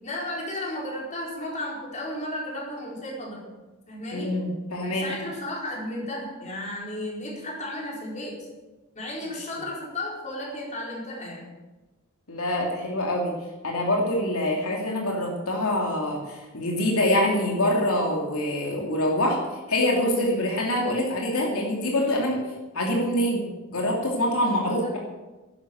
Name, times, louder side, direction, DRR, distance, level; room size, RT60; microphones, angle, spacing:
voice 1, 0.0-3.5 3.9-4.4 4.8-8.5 8.9-11.5 24.6-24.9, left 1 dB, 35° left, -3 dB, 4.5 m, -34 dB
voice 2, 4.1-5.1 12.3-13.3 13.6-19.4 19.7-22.4 22.7-23.4 23.7-25.0, left 1 dB, 85° left, -1 dB, 2.8 m, -25 dB
11.5 x 11.0 x 7.9 m, 1.2 s
head